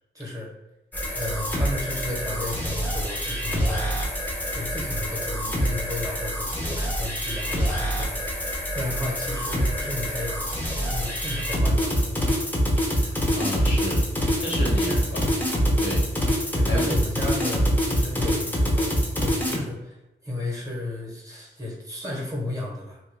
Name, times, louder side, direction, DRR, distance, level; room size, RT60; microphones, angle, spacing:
voice 1, 0.1-0.5 1.1-3.9 4.5-8.4 8.7-12.5 14.8-15.1 16.5-23.0, left 1 dB, 15° right, -2 dB, 0.9 m, -34 dB
sound 1, 0.9-19.6, equal, 10° left, 0.6 m, -25 dB
voice 2, 12.9-14.0 14.4-15.2 15.8-16.1 16.6-16.9, left 1 dB, 80° left, -2 dB, 1.0 m, -31 dB
2.9 x 2.3 x 3.1 m, 0.95 s
wide cardioid pair, 150°, 20 cm